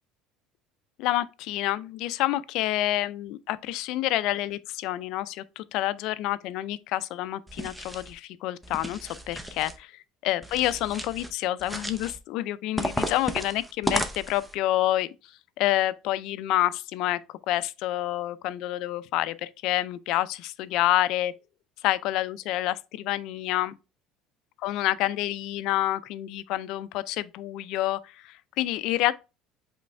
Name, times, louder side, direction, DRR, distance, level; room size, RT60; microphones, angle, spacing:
voice 1, 1.0-15.1 15.6-21.3 21.8-23.8 24.6-29.1, left 15 dB, 60° left, 0.3 m, -28 dB
sound 1, 7.5-8.1 8.6-9.8 10.4-11.3 11.6-12.2 12.8-14.5, equal, 5° right, 0.5 m, -33 dB
5.1 x 3.2 x 3.2 m
cardioid pair, 150°, 0 cm